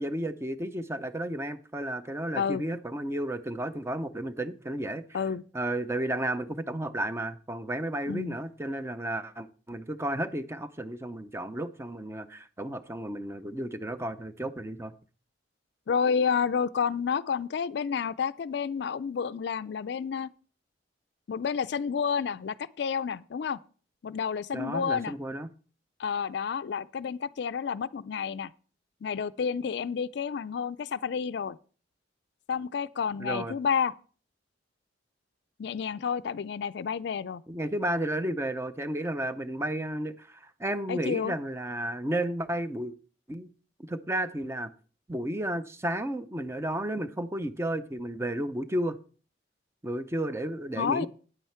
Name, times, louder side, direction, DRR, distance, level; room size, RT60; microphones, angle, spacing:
voice 1, 0.0-5.2 5.5-14.9 24.5-25.5 33.2-33.5 37.5-42.9 43.3-43.5 43.8-44.7 45.1-49.0 49.8-51.1, right 1 dB, 15° right, 0.5 m, -32 dB
voice 2, 15.9-20.3 21.3-23.6 24.0-25.1 26.0-28.5 29.0-31.6 32.5-33.9 35.6-37.4 40.9-41.3 50.8-51.1, left 6 dB, 60° left, 0.4 m, -30 dB
9.4 x 9.0 x 4.4 m
head